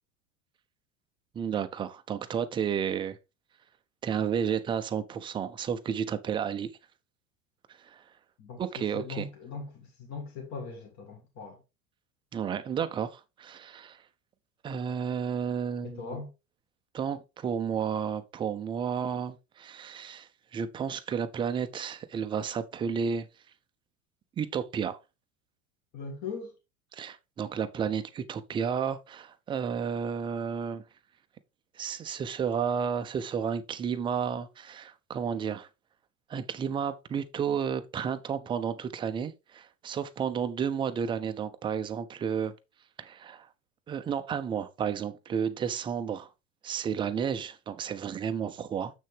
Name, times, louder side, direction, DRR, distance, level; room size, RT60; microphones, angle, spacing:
voice 1, 1.3-3.2 4.0-6.7 7.8-8.0 8.6-9.3 12.3-14.0 14.6-16.2 16.9-23.3 24.4-25.0 26.9-30.8 31.8-35.7 36.3-42.5 43.0-43.5 43.9-46.3 46.6-48.9, right 7 dB, 10° right, 0.4 m, -32 dB
voice 2, 8.4-11.6 15.8-16.3 25.9-26.5, left 4 dB, 40° left, 1.7 m, -40 dB
7.0 x 6.3 x 3.4 m
figure-of-eight pair, 85°, 44 cm